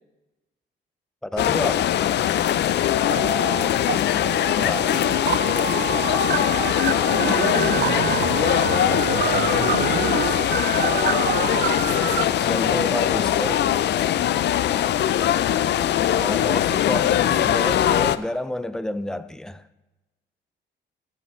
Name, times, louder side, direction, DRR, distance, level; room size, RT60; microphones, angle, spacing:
voice 1, 1.2-2.0 4.6-5.1 12.4-13.6 16.1-19.7, left 1 dB, 5° left, 0.5 m, -30 dB
sound 1, 1.4-18.2, left 11 dB, 60° left, 0.4 m, -21 dB
sound 2, 3.0-4.0 4.2-12.2, right 11 dB, 50° right, 0.4 m, -27 dB
voice 2, 3.7-4.3 7.4-8.4 13.6-14.2 14.8-15.2, right 3 dB, 70° right, 3.2 m, -42 dB
sound 3, 6.4-13.8, left 4 dB, 85° left, 1.7 m, -35 dB
15.0 x 8.3 x 3.1 m
cardioid pair, 90°, 20 cm